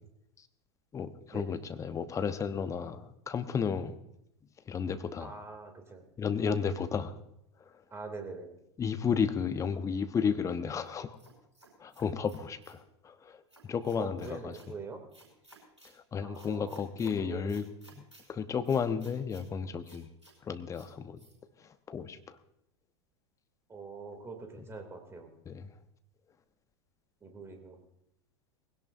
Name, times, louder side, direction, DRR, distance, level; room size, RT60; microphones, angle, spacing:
voice 1, 0.9-4.0 4.7-5.3 6.2-7.1 8.8-11.2 11.8-14.5 15.9-17.6 18.0-18.1 18.3-20.1 20.4-21.2 21.6-22.4 25.4-25.7, left 6 dB, 20° left, 10 dB, 1.0 m, -33 dB
voice 2, 5.2-6.1 6.6-6.7 7.9-8.5 14.0-15.0 16.2-16.8 17.0-17.5 23.7-25.3 27.2-27.8, right 4 dB, 15° right, 5 dB, 2.8 m, -43 dB
sound 1, 10.8-12.8 13.5-14.7 15.1-15.9 16.3-17.1 17.5-18.2 18.6-19.5 19.8-20.3 20.7-20.9 21.2-21.3, right 2 dB, 90° right, 5.0 m, -57 dB
20.0 x 17.0 x 2.7 m, 0.77 s
figure-of-eight pair, 90°, 15 cm